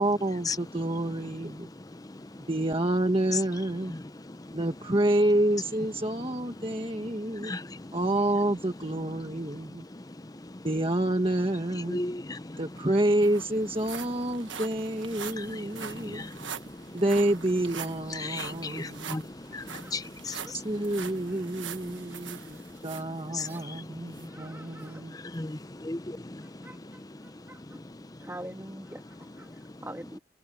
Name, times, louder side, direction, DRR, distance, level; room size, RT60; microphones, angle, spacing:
voice 1, 0.0-1.7 2.5-3.9 4.5-7.5 7.9-9.8 10.6-12.0 12.6-16.3 16.9-19.3 19.8-19.9 20.5-22.6 22.8-25.2, right 1 dB, 30° right, 1.5 m, -28 dB
voice 2, 1.9-2.4 3.9-4.6 7.3-8.0 9.9-10.7 11.9-12.6 15.3-17.0 18.1-19.2 19.5-20.6 21.9-23.1 23.3-24.4 25.2-27.3 27.7-28.0, left 3 dB, 20° left, 0.6 m, -38 dB
sound 1, 12.4-12.5 12.8-23.6 24.1-24.3 24.8-24.9, right 7 dB, 80° right, 1.4 m, -43 dB
voice 3, 19.1-20.1 20.4-20.6 21.3-21.5 21.9-23.0 23.4-23.7 24.3-25.0 26.4-27.8 28.2-30.2, right 1 dB, 10° right, 2.2 m, -47 dB
head